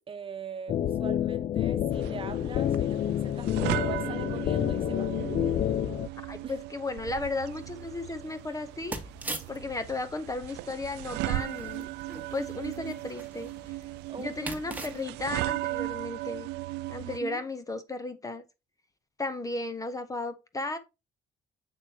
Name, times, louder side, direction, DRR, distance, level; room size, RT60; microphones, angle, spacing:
voice 1, 0.1-5.1 6.4-6.6 14.1-14.4 17.0-17.4, right 6 dB, 30° right, 1.1 m, -42 dB
sound 1, 0.7-6.1, left 11 dB, 45° left, 0.4 m, -28 dB
sound 2, 1.9-17.2, right 17 dB, 85° right, 0.4 m, -37 dB
voice 2, 6.3-9.0 9.5-11.9 12.3-13.7 14.2-16.5 16.9-18.4 19.2-20.8, left 2 dB, 20° left, 0.8 m, -35 dB
sound 3, 7.4-15.2, right 2 dB, 10° right, 1.5 m, -43 dB
7.3 x 6.5 x 2.8 m
cardioid pair, 110°, 17 cm